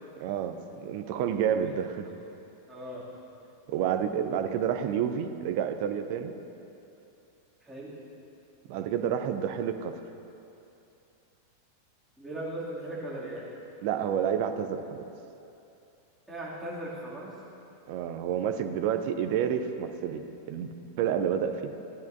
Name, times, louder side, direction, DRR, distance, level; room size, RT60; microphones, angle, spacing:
voice 1, 0.2-2.1 3.7-6.3 8.7-9.9 13.8-15.1 17.9-21.7, right 8 dB, 45° right, 8 dB, 0.6 m, -29 dB
voice 2, 2.7-3.1 7.6-7.9 12.2-13.5 16.3-17.4, right 1 dB, 5° right, -8 dB, 2.6 m, -38 dB
16.0 x 10.5 x 2.7 m, 2.8 s
figure-of-eight pair, 90°, 0 cm